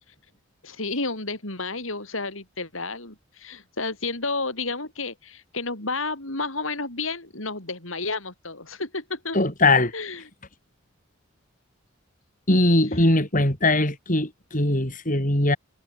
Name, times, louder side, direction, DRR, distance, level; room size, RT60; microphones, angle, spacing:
voice 1, 0.6-9.4 9.9-10.2, left 3 dB, 75° left, 6.8 m, -31 dB
voice 2, 9.3-9.9 12.5-15.6, left 2 dB, 40° left, 7.7 m, -21 dB
head